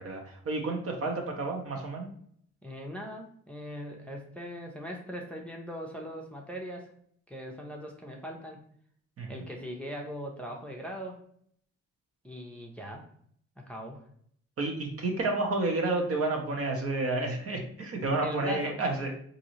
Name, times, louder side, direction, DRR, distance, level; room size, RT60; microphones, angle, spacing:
voice 1, 0.0-2.1 9.2-9.4 14.6-19.1, right 2 dB, 50° right, 2 dB, 0.9 m, -30 dB
voice 2, 2.6-6.9 7.3-8.7 9.3-11.2 12.2-13.1 13.6-14.0 18.2-18.8, equal, 5° left, 0 dB, 0.6 m, -40 dB
3.8 x 2.7 x 3.0 m, 0.64 s
cardioid pair, 90°, 30 cm